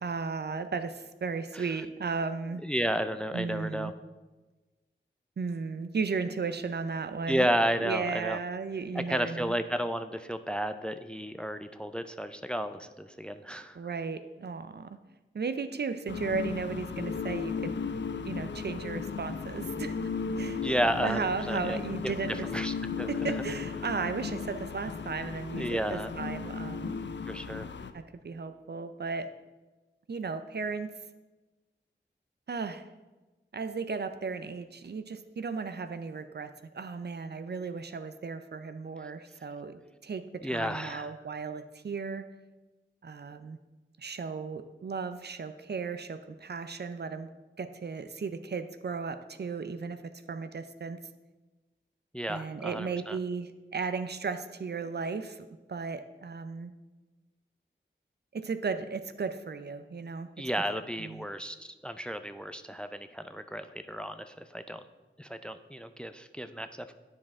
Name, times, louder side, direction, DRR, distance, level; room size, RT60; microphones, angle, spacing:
voice 1, 0.0-2.6 3.3-3.9 5.4-7.5 7.8-9.5 13.7-15.0 15.3-17.7 18.2-20.1 20.4-20.6 21.0-22.5 23.1-26.9 27.9-29.3 30.1-30.9 32.5-32.9 33.5-42.3 43.0-43.6 44.0-47.3 47.6-51.0 52.3-56.7 58.3-60.3 61.0-61.2, right 5 dB, 55° right, 10 dB, 0.5 m, -35 dB
voice 2, 2.6-3.9 7.3-8.4 8.9-13.8 20.6-21.8 22.0-22.1 22.5-23.3 25.5-26.1 27.3-27.7 40.4-41.1 52.1-53.2 60.4-64.8 65.2-66.9, equal, 5° left, 10 dB, 0.4 m, -32 dB
sound 1, 16.1-27.9, left 5 dB, 65° left, 0.5 m, -35 dB
9.3 x 5.0 x 3.6 m, 1.2 s
cardioid pair, 40°, 20 cm